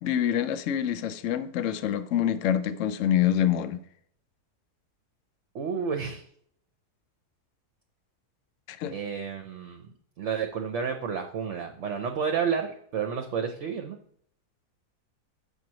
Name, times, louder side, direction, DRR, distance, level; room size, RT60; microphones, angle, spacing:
voice 1, 0.0-3.8 8.7-8.9, left 10 dB, 65° left, 0.8 m, -26 dB
voice 2, 5.5-6.2 8.9-9.9 10.2-14.0, right 6 dB, 60° right, 0.9 m, -30 dB
6.7 x 4.5 x 6.1 m
omnidirectional pair, 1.7 m